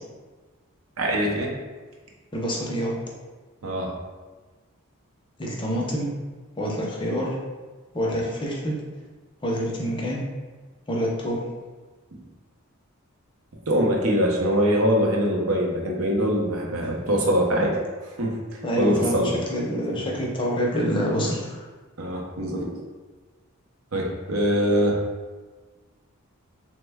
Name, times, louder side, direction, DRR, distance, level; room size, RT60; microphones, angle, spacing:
voice 1, 1.0-1.5 3.6-4.0 12.1-12.2 13.7-17.8 18.0-19.3 19.9-20.0 22.0-22.8 23.9-25.0, equal, 70° right, -1 dB, 0.6 m, -23 dB
voice 2, 2.3-2.9 5.4-6.1 6.6-7.4 7.9-8.8 9.4-10.2 10.9-11.4 16.8-16.9 18.6-19.2 19.5-21.6, equal, 25° left, -3 dB, 0.5 m, -26 dB
3.0 x 2.1 x 3.4 m, 1.3 s
head